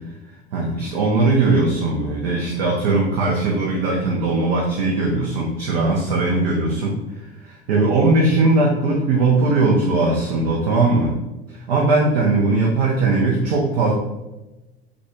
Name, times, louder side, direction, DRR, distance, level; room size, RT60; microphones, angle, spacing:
voice 1, 0.5-11.1 11.5-13.9, right 3 dB, 60° right, -2 dB, 0.9 m, -19 dB
6.4 x 2.3 x 3.0 m, 1.0 s
figure-of-eight pair, 75°, 32 cm